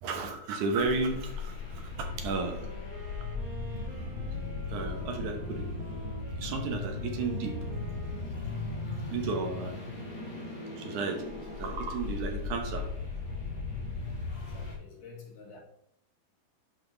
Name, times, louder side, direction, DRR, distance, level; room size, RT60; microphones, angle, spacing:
voice 1, 0.0-2.7 4.7-5.7 6.4-7.6 9.1-9.7 10.8-12.9, right 4 dB, 75° right, 2.5 m, -33 dB
sound 1, 0.8-14.8, left 3 dB, 60° left, 2.9 m, -37 dB
Wind instrument woodwind instrument, 1.8-9.9, equal, 45° right, 2.8 m, -49 dB
voice 2, 9.0-9.9 14.4-15.6, left 4 dB, 90° left, 3.6 m, -51 dB
11.0 x 4.3 x 3.4 m
omnidirectional pair, 3.6 m